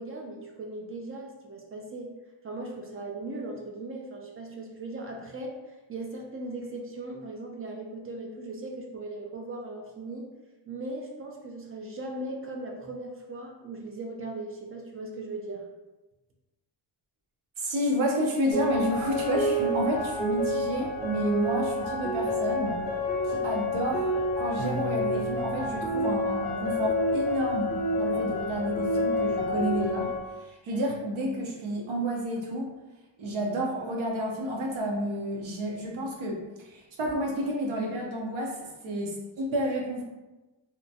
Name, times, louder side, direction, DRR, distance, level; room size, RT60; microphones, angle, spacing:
voice 1, 0.0-2.1 2.4-10.3 10.7-15.6, right 2 dB, 30° right, 0 dB, 0.3 m, -38 dB
voice 2, 17.6-22.8 23.2-24.1 24.4-30.1 30.5-32.7 33.2-40.0, equal, 75° right, -1 dB, 0.8 m, -30 dB
sound 1, 18.5-30.2, left 1 dB, 20° left, 0.7 m, -29 dB
Piano, 24.6-26.8, right 2 dB, 50° right, 0.9 m, -38 dB
2.8 x 2.1 x 2.7 m, 1.1 s
wide cardioid pair, 130°, 47 cm